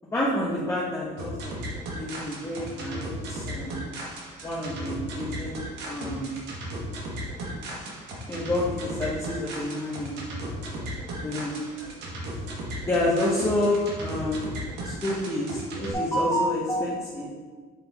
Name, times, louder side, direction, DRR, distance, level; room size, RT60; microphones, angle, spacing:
voice 1, 0.1-1.5 1.9-3.7 4.4-6.4 8.3-12.0 12.9-14.6 14.8-17.3, left 1 dB, 15° left, -8 dB, 1.1 m, -29 dB
sound 1, 1.2-15.9, right 1 dB, 80° right, 1.4 m, -36 dB
7.1 x 3.8 x 3.5 m, 1.4 s
cardioid pair, 110°, 17 cm